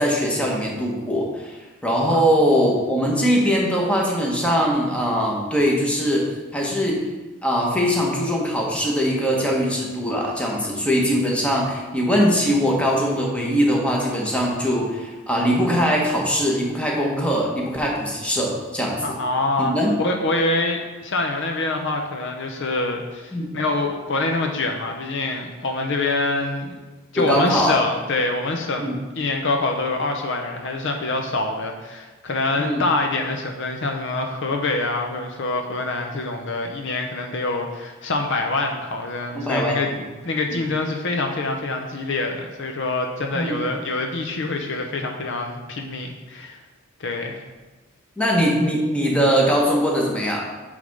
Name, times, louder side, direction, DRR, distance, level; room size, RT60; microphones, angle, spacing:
voice 1, 0.0-1.6 1.8-7.0 7.4-19.1 19.6-19.9 23.3-23.5 27.1-27.8 28.8-28.9 32.6-32.8 39.3-39.7 43.3-43.6 48.2-50.5, equal, 5° left, -2 dB, 1.2 m, -21 dB
voice 2, 19.0-19.7 20.0-26.7 27.1-39.9 40.2-46.6 47.0-47.4, left 2 dB, 60° left, 3 dB, 0.7 m, -25 dB
8.2 x 3.5 x 5.3 m, 1.2 s
head